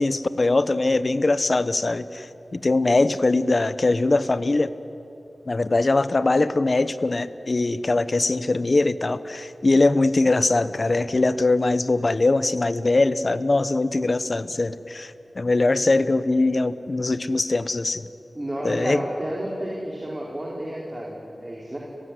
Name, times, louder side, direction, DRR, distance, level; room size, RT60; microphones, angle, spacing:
voice 1, 0.0-4.7 5.5-18.1 18.6-19.0, left 2 dB, 50° left, 14 dB, 1.0 m, -22 dB
voice 2, 18.3-21.8, right 1 dB, 25° right, -3 dB, 4.2 m, -31 dB
30.0 x 16.5 x 9.8 m, 2.9 s
wide cardioid pair, 55°, 0 cm